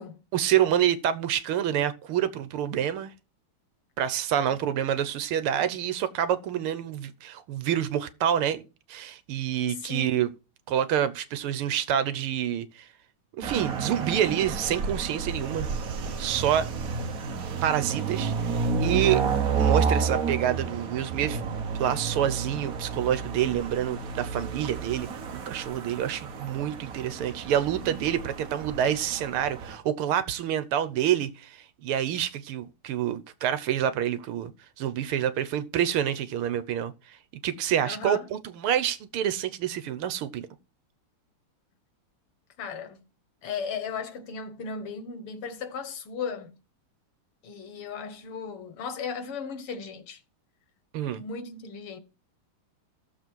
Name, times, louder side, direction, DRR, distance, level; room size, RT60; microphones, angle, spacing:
voice 1, 0.3-3.1 4.0-10.3 10.7-12.9 13.4-15.7 16.2-16.7 17.6-19.2 19.6-21.4 21.8-25.1 25.3-34.5 34.8-36.9 37.4-40.5 50.9-51.2, right 10 dB, 80° right, 1.8 m, -27 dB
sound 1, 13.4-29.8, right 5 dB, 55° right, 1.1 m, -31 dB
voice 2, 37.8-38.3 42.6-43.0 43.4-46.6 47.4-50.2 51.2-52.0, left 5 dB, 90° left, 2.3 m, -36 dB
15.5 x 7.0 x 4.6 m
omnidirectional pair, 2.4 m